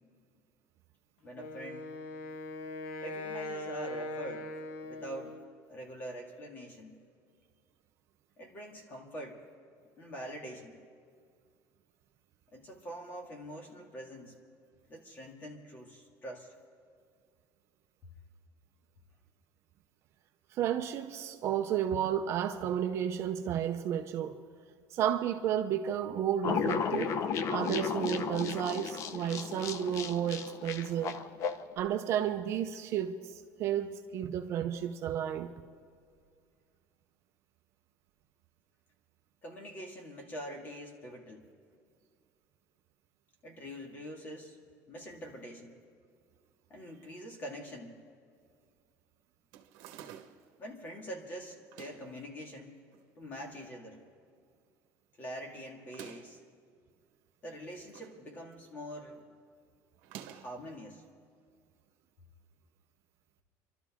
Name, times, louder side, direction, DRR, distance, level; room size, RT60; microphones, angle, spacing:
voice 1, 1.2-2.0 3.0-4.5 4.8-5.4 5.7-6.9 8.4-9.4 10.0-10.8 12.5-14.4 14.9-16.5 39.4-41.5 43.4-44.6 44.9-45.8 46.7-48.0 50.6-52.8 53.2-54.0 55.2-56.4 57.4-59.2 60.3-61.0, equal, 25° left, 2.0 m, -44 dB
Wind instrument woodwind instrument, 1.3-5.6, left 2 dB, 70° left, 1.5 m, -41 dB
voice 2, 20.5-24.4 24.9-27.1 27.5-31.2 31.8-35.5, right 9 dB, 40° right, 0.7 m, -32 dB
sound 1, 26.4-31.6, left 6 dB, 45° left, 0.7 m, -34 dB
sound 2, 49.5-50.5 51.6-52.2 52.9-53.6 53.9-54.0 54.2-54.3 55.8-56.4 57.5-58.2 58.5-58.9 60.0-60.6, right 10 dB, 75° right, 1.3 m, -50 dB
27.5 x 12.5 x 3.6 m
cardioid pair, 175°, 7 cm